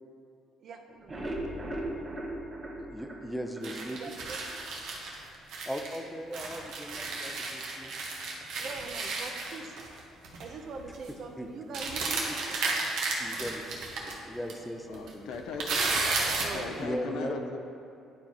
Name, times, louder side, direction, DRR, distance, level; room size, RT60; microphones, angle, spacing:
voice 1, 0.6-1.3 1.6-2.1 3.6-3.7 4.0-4.4 8.6-9.7 10.4-12.6 16.4-16.9, right 4 dB, 50° right, 0.6 m, -43 dB
sound 1, 0.9-4.1 4.5-4.6 5.0-5.1 5.4-5.5, right 1 dB, 20° right, 0.9 m, -38 dB
voice 2, 2.7-4.0 5.7-7.9 11.4-11.5 12.3-12.4 13.2-13.6 13.9-15.4 16.7-17.3, equal, ahead, 0.5 m, -38 dB
sound 2, 3.6-6.0 6.3-10.0 10.2-10.5 10.8-11.1 11.7-14.1 14.5-14.6 14.9-16.6, right 3 dB, 75° right, 1.1 m, -33 dB
voice 3, 14.9-16.0 16.5-17.6, left 5 dB, 75° left, 0.6 m, -38 dB
10.5 x 4.6 x 2.9 m
cardioid pair, 115°, 0 cm